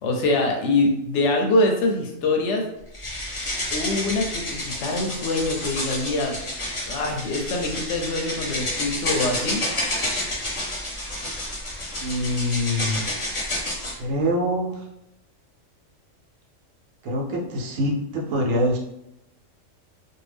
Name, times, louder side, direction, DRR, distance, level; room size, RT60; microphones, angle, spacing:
voice 1, 0.0-2.6 3.7-6.4 6.9-9.6, left 2 dB, 70° left, 2 dB, 0.8 m, -24 dB
sound 1, 2.9-14.0, left 1 dB, 35° left, 0.6 m, -29 dB
voice 2, 12.0-13.0 14.0-14.8 17.0-18.8, equal, 80° right, -1 dB, 1.0 m, -24 dB
2.6 x 2.2 x 3.3 m, 0.83 s
omnidirectional pair, 1.3 m